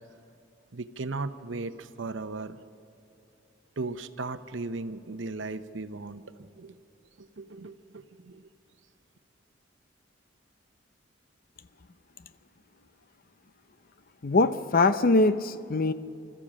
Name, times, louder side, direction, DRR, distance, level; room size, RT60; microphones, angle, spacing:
voice 1, 0.7-2.6 3.8-6.7 7.2-8.4, right 3 dB, 80° right, 11 dB, 0.8 m, -37 dB
voice 2, 14.2-15.9, left 2 dB, 50° left, 13 dB, 0.7 m, -22 dB
25.0 x 14.0 x 7.4 m, 2.9 s
head